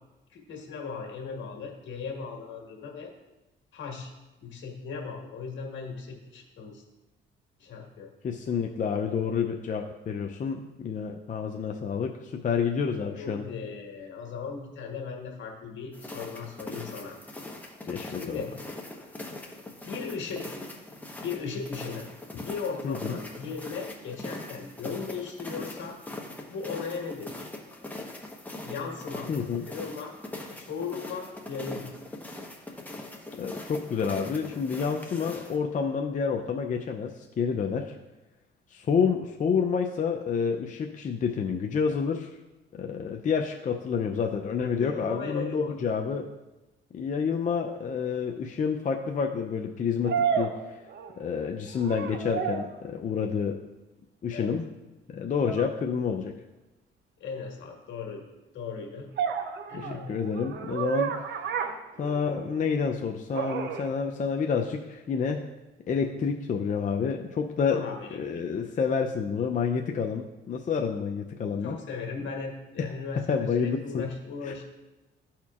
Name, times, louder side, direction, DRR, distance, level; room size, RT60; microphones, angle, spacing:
voice 1, 0.3-3.1 3.7-4.1 4.4-6.8 7.6-8.1 13.2-17.2 18.0-18.5 19.8-20.5 21.2-22.1 22.4-26.0 26.5-27.5 28.6-29.3 29.7-30.1 30.4-32.0 44.8-45.7 54.3-54.5 57.2-58.2 58.5-59.1 59.7-60.1 67.7-68.4 71.6-74.6, left 5 dB, 70° left, 0 dB, 1.6 m, -37 dB
voice 2, 8.2-13.4 17.8-18.4 22.8-23.2 29.3-29.6 33.4-37.9 38.7-42.3 42.7-46.3 46.9-50.8 51.2-53.6 54.2-54.7 55.1-56.3 59.7-61.1 62.0-65.4 65.9-67.8 68.2-71.8 73.3-74.1 74.4-74.6, left 6 dB, 40° left, 2 dB, 0.5 m, -29 dB
sound 1, 15.9-35.6, left 2 dB, 10° left, 1.0 m, -41 dB
sound 2, 47.7-47.8 50.1-51.4 51.7-52.8 55.5-55.7 59.2-62.6 63.3-63.9, right 7 dB, 65° right, 0.7 m, -31 dB
12.5 x 4.3 x 2.4 m, 1.1 s
cardioid pair, 90°, 20 cm